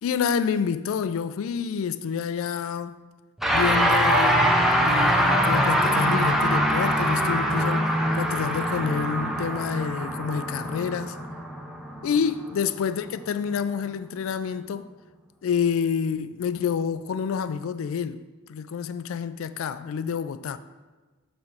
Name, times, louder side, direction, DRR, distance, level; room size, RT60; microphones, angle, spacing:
voice 1, 0.0-3.0 3.5-11.2 12.0-14.9 15.4-18.2 18.5-20.6, left 6 dB, 70° left, 0.3 m, -28 dB
sound 1, 3.4-12.9, equal, ahead, 0.5 m, -23 dB
7.0 x 3.2 x 5.6 m
head